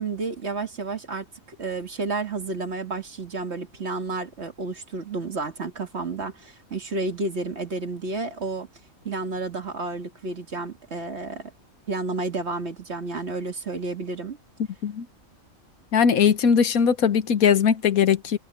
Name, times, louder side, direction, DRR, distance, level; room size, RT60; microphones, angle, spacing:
voice 1, 0.0-8.7 9.0-11.5 11.9-14.4, right 3 dB, 50° right, 2.2 m, -31 dB
voice 2, 15.9-18.4, left 7 dB, 90° left, 1.6 m, -20 dB
omnidirectional pair, 1.4 m